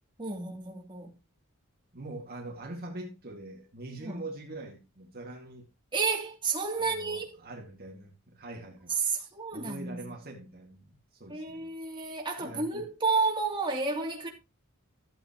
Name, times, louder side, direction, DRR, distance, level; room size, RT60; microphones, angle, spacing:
voice 1, 0.2-1.1 4.0-4.3 5.9-7.3 8.9-10.2 11.3-14.3, right 4 dB, 25° right, 2.9 m, -31 dB
voice 2, 1.9-5.7 6.8-11.7 12.4-12.9, right 2 dB, 45° right, 2.1 m, -43 dB
14.0 x 8.8 x 3.0 m
head